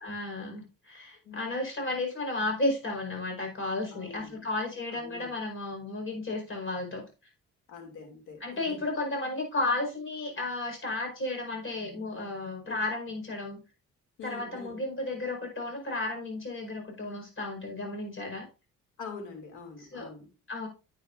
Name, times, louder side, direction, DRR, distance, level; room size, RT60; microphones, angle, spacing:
voice 1, 0.0-7.0 8.4-13.6 14.2-18.5 19.8-20.1 20.5-20.7, left 2 dB, 40° left, 2 dB, 5.0 m, -33 dB
voice 2, 1.2-1.6 3.9-4.5 4.9-5.3 7.7-8.8 12.7-12.8 14.2-14.8 19.0-20.3, left 5 dB, 85° left, 4 dB, 2.7 m, -45 dB
10.5 x 8.9 x 2.6 m, 0.31 s
cardioid pair, 90°, 30 cm